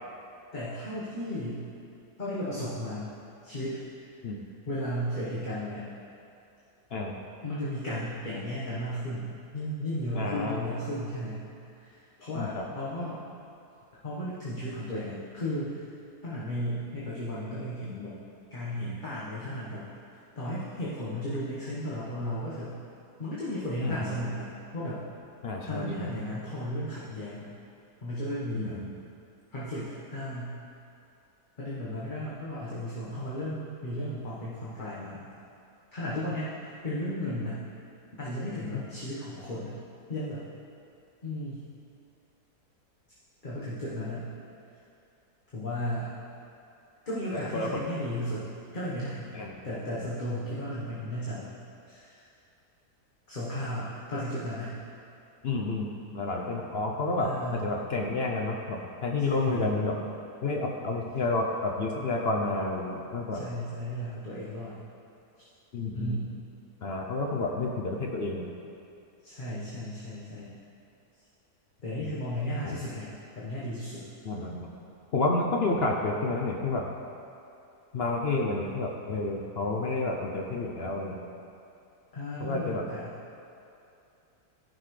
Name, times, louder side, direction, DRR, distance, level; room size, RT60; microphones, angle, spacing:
voice 1, 0.5-1.6 2.2-3.2 3.4-3.8 4.7-5.9 7.4-11.4 11.8-13.2 14.0-15.9 16.2-18.1 18.5-19.9 20.3-22.8 23.2-25.0 25.6-27.5 28.0-28.8 29.5-30.6 31.6-35.2 35.9-37.6 38.2-39.7 40.1-40.4 41.2-41.6 43.4-44.3 45.5-46.1 47.0-48.4 48.7-49.3 49.6-51.5 51.9-52.2 53.3-54.7 57.2-57.6 59.2-59.6 63.4-64.8 65.4-65.5 65.9-66.5 69.2-70.5 71.8-74.0 82.1-83.1, equal, 30° left, -10 dB, 1.3 m, -34 dB
voice 2, 10.2-10.6 12.4-12.6 23.8-24.1 25.4-26.1 28.5-28.9 47.3-47.8 49.3-49.7 55.4-60.0 60.4-63.5 65.7-66.2 66.8-68.5 72.6-72.8 74.2-74.7 75.1-76.9 77.9-81.2 82.4-82.9, left 2 dB, 55° left, 0 dB, 0.7 m, -30 dB
14.5 x 5.9 x 3.2 m, 2.7 s
omnidirectional pair, 1.7 m